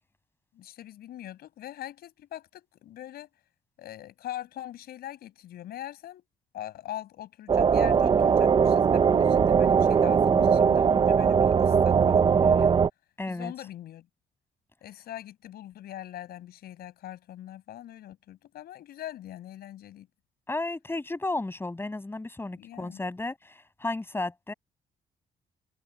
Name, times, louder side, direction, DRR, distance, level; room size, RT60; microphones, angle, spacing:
voice 1, 0.5-3.3 3.8-6.2 6.5-12.8 13.3-14.1 14.8-20.1 22.6-23.0, left 12 dB, 80° left, 7.3 m, -42 dB
sound 1, 7.5-12.9, right 6 dB, 30° right, 0.5 m, -20 dB
voice 2, 13.2-13.5 20.5-24.5, left 2 dB, 15° left, 7.1 m, -33 dB
cardioid pair, 115°, 16 cm